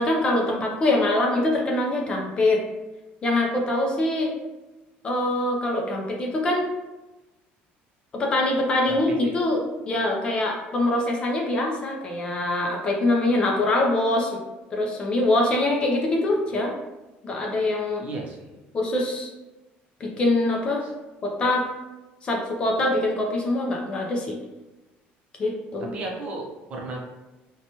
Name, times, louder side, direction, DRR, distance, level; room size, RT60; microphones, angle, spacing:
voice 1, 0.0-2.6 3.2-4.3 5.0-6.7 8.1-9.6 9.9-14.4 14.7-16.7 17.2-18.0 18.7-19.3 20.0-20.9 21.2-21.7 22.2-24.4 25.4-25.9, left 2 dB, 25° left, 0 dB, 0.4 m, -24 dB
voice 2, 8.9-9.3 18.0-18.6 20.8-20.9 25.9-27.1, right 2 dB, 35° right, -1 dB, 0.5 m, -34 dB
2.7 x 2.2 x 2.8 m, 1.1 s
cardioid pair, 170°, 4 cm